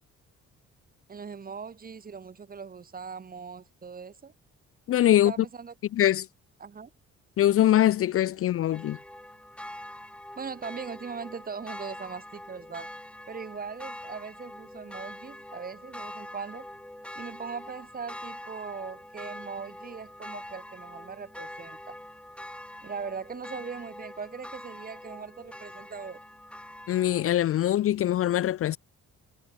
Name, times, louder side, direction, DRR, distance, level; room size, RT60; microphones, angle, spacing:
voice 1, 1.1-4.3 5.1-5.7 6.6-6.9 10.4-12.9 13.3-16.7 17.1-22.0 22.8-26.2, right 6 dB, 30° right, 1.0 m, -40 dB
voice 2, 4.9-5.3 5.9-6.3 7.4-9.0 26.9-28.8, left 12 dB, 50° left, 0.4 m, -23 dB
sound 1, 8.7-27.5, left 1 dB, 5° left, 1.1 m, -44 dB
cardioid pair, 90°, 30 cm